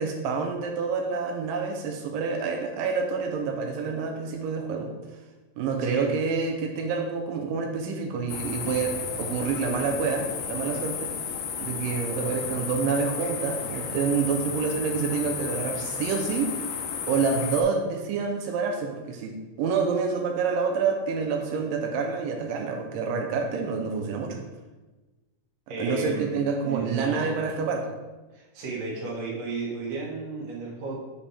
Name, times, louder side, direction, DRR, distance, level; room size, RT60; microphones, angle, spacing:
voice 1, 0.0-4.9 5.6-11.1 11.5-16.7 17.1-24.4 25.8-27.9, right 5 dB, 90° right, 3 dB, 2.3 m, -28 dB
sound 1, 8.3-17.6, left 7 dB, 75° left, 2.2 m, -33 dB
voice 2, 25.7-26.3 26.6-27.3 28.3-31.0, right 3 dB, 55° right, -4 dB, 2.6 m, -33 dB
7.0 x 5.1 x 3.3 m, 1.2 s
omnidirectional pair, 3.8 m